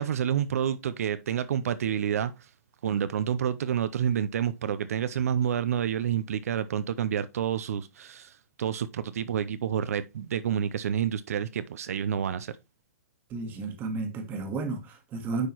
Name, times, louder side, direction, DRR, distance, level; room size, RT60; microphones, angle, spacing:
voice 1, 0.0-2.5 2.8-12.6, right 9 dB, 70° right, 0.6 m, -29 dB
voice 2, 13.3-15.5, right 3 dB, 20° right, 1.4 m, -32 dB
9.4 x 4.5 x 3.0 m
hypercardioid pair, 155°, 8 cm